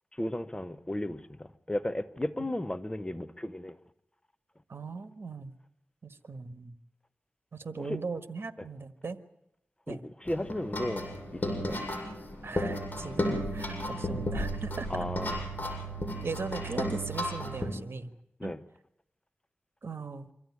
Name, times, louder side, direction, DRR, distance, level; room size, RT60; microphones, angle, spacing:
voice 1, 0.1-3.7 7.8-8.0 9.9-11.1 11.3-11.8 14.9-15.4 18.4-18.6, left 1 dB, 20° left, 1.0 m, -34 dB
voice 2, 4.7-5.5 6.0-6.7 7.5-9.2 9.9-10.0 12.4-14.9 16.2-18.1 18.4-18.5 19.8-20.3, right 4 dB, 70° right, 1.5 m, -38 dB
sound 1, 10.2-17.7, equal, 40° left, 7.5 m, -34 dB
25.0 x 14.5 x 9.7 m
wide cardioid pair, 55°, 4 cm